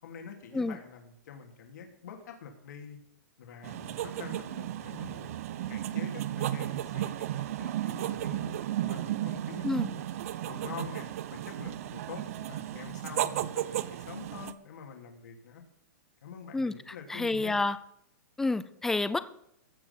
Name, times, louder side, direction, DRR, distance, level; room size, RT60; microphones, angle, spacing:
voice 1, 0.0-3.0 3.4-5.4 5.7-10.0 10.4-15.6 16.2-17.6, left 6 dB, 75° left, 3 dB, 2.6 m, -46 dB
sound 1, 3.6-14.5, right 12 dB, 50° right, 0.8 m, -34 dB
voice 2, 17.1-17.8 18.4-19.2, left 3 dB, 5° left, 14 dB, 0.4 m, -29 dB
15.5 x 6.3 x 7.0 m, 0.74 s
supercardioid pair, 165°, 10 cm